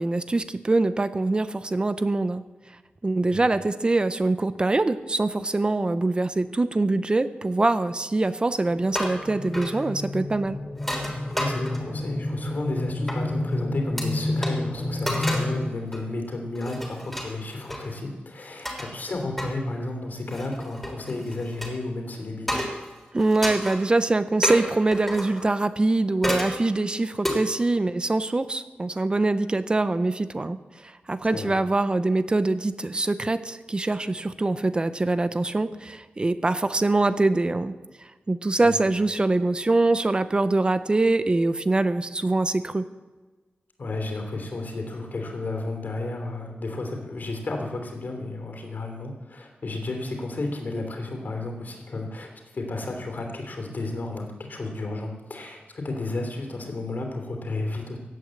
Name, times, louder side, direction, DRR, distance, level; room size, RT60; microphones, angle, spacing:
voice 1, 0.0-2.4 3.0-10.6 23.1-37.7 38.3-42.9, right 2 dB, 25° right, 12 dB, 0.6 m, -24 dB
sound 1, 8.7-15.6, left 1 dB, 20° left, 2.1 m, -30 dB
sound 2, 8.8-9.2 9.5-9.8 10.8-12.0 13.1-13.2 14.0-14.1 14.4-14.5 15.1-15.6 15.9-16.1 16.5-17.8 18.6-18.9 19.4-19.5 20.3-21.7 22.5-22.9 23.2-23.8 24.4-25.5 26.2-26.6 27.2-27.4, equal, 5° left, 3.2 m, -30 dB
voice 2, 11.4-22.6 31.3-31.6 38.6-38.9 43.8-58.0, left 2 dB, 55° left, 3 dB, 3.2 m, -32 dB
17.0 x 9.2 x 7.8 m, 1.3 s
wide cardioid pair, 135°, 4 cm